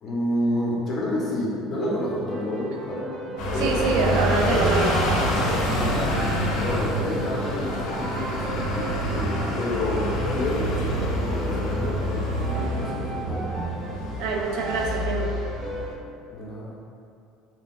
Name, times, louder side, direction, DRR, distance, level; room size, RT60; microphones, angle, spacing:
voice 1, 0.0-3.0 3.3-4.6 5.7-6.1 6.6-13.5 16.3-16.7, left 1 dB, 30° left, -5 dB, 0.6 m, -30 dB
sound 1, 1.8-15.9, right 2 dB, 35° right, 0.6 m, -37 dB
sound 2, 3.4-15.9, equal, 70° left, 0.5 m, -27 dB
voice 2, 3.6-5.0 14.2-15.3, right 3 dB, 75° right, 0 dB, 0.3 m, -25 dB
2.2 x 2.2 x 3.6 m, 2.6 s
cardioid pair, 140°, 0 cm